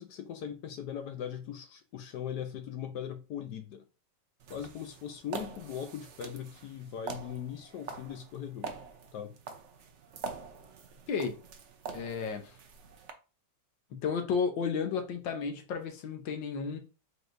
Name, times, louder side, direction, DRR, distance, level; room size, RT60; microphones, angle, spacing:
voice 1, 0.0-3.8 4.5-8.8 9.1-9.3, left 9 dB, 70° left, 1.1 m, -40 dB
sound 1, 4.4-13.1, right 5 dB, 60° right, 0.7 m, -45 dB
voice 2, 11.1-11.4 11.9-12.6 13.9-16.8, left 5 dB, 85° left, 1.6 m, -32 dB
4.9 x 4.1 x 2.6 m
omnidirectional pair, 2.0 m